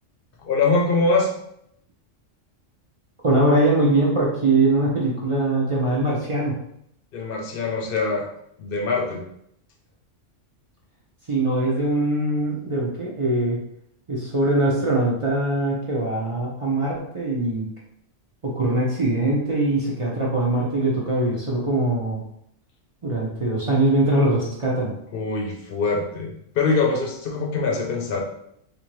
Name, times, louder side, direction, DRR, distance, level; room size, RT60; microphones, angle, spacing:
voice 1, 0.4-1.3 7.1-8.3 8.6-9.2 25.1-28.2, left 3 dB, 55° left, 2 dB, 0.8 m, -23 dB
voice 2, 3.2-6.6 11.3-13.6 14.1-17.7 18.4-22.2 23.0-24.9, right 2 dB, 40° right, -5 dB, 0.5 m, -22 dB
3.4 x 2.6 x 3.0 m, 0.72 s
omnidirectional pair, 1.3 m